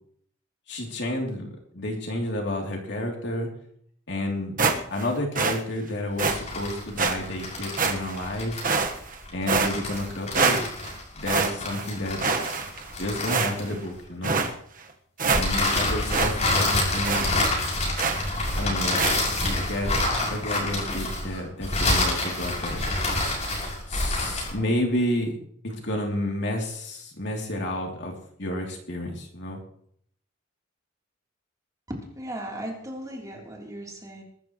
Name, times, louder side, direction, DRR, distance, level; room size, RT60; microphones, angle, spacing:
voice 1, 0.7-1.5 1.7-3.5 4.1-4.6 4.9-8.6 9.3-10.6 11.1-12.2 13.0-14.4 15.3-17.3 18.5-19.1 19.5-22.8 23.9-25.4 25.6-28.1 28.4-29.6, left 1 dB, 60° left, 0 dB, 3.1 m, -30 dB
sound 1, 4.6-5.1 5.3-5.6 6.2-6.4 7.0-7.1 7.8-8.2 8.6-9.2 9.5-10.1 10.3-10.9 11.3-11.9 12.2-12.9 13.3-13.8 14.2-14.5 14.9-15.0 15.2-15.8 16.1-16.3 16.6-16.7 17.0-17.3 18.0-18.3 19.0-19.2, right 4 dB, 45° right, 1.4 m, -25 dB
sound 2, 6.2-14.0 15.3-24.6, left 2 dB, 35° left, 6.7 m, -27 dB
voice 2, 31.9-34.2, right 1 dB, 20° right, -2 dB, 3.5 m, -36 dB
22.5 x 13.5 x 3.2 m, 0.65 s
head